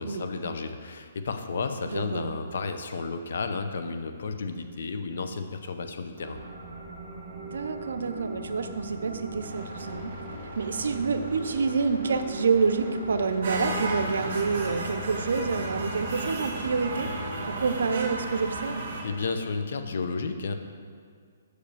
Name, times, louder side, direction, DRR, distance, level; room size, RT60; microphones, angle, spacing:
voice 1, 0.0-6.4 19.0-20.5, left 4 dB, 65° left, 7 dB, 0.7 m, -32 dB
voice 2, 1.8-2.4 7.5-10.1 10.6-17.1 17.5-18.8, right 5 dB, 80° right, 9 dB, 0.6 m, -28 dB
sound 1, 6.1-18.3, equal, 35° right, 2.0 m, -40 dB
sound 2, 13.4-19.0, right 2 dB, 55° right, 2.1 m, -33 dB
6.4 x 5.0 x 6.8 m, 2.1 s
hypercardioid pair, 165°, 0 cm